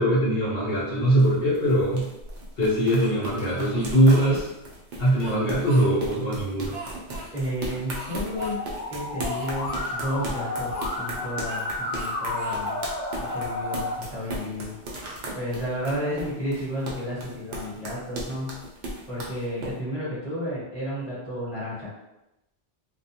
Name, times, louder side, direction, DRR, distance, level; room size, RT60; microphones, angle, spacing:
voice 1, 0.0-2.1 2.6-4.5 5.0-6.7, right 1 dB, 60° left, -6 dB, 0.9 m, -21 dB
sound 1, 0.7-19.7, right 1 dB, 55° right, 0.6 m, -37 dB
Speech, 3.0-4.4 5.0-6.2 6.7-7.3 7.9-8.5 8.8-8.9 9.2-10.0 10.7-11.7 11.9-12.6 13.1-14.5, right 1 dB, 80° right, 0.9 m, -41 dB
voice 2, 7.3-8.6 8.9-12.8 13.2-14.8 15.3-18.7 19.1-21.9, equal, 30° right, -10 dB, 1.0 m, -32 dB
Musical instrument, 8.4-13.9, left 2 dB, 40° left, 0.6 m, -31 dB
2.3 x 2.2 x 2.7 m, 0.91 s
omnidirectional pair, 1.2 m